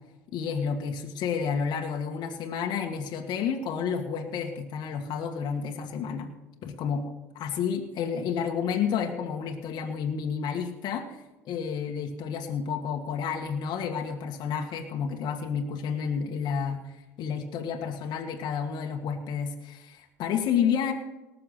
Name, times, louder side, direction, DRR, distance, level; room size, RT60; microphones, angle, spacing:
voice 1, 0.3-6.3 6.6-11.2 11.5-20.9, left 7 dB, 60° left, 2 dB, 1.7 m, -30 dB
19.0 x 6.9 x 5.7 m, 1.1 s
hypercardioid pair, 70°, 8 cm